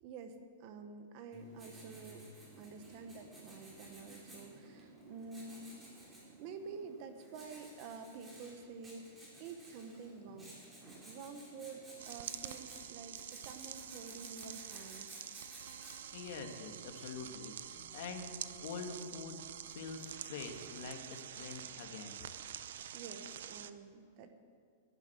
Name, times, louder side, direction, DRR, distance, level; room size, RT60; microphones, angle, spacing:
voice 1, 0.0-2.3 2.6-6.1 6.4-10.6 11.0-15.1 22.9-24.3, right 4 dB, 35° right, 8 dB, 1.0 m, -49 dB
Writing, 1.3-16.3, right 1 dB, 10° right, 3.5 m, -55 dB
sound 1, 12.0-23.7, right 10 dB, 70° right, 0.6 m, -47 dB
voice 2, 16.1-22.2, left 5 dB, 50° left, 5 dB, 1.5 m, -46 dB
11.0 x 11.0 x 7.5 m, 2.1 s
supercardioid pair, 170°, 0 cm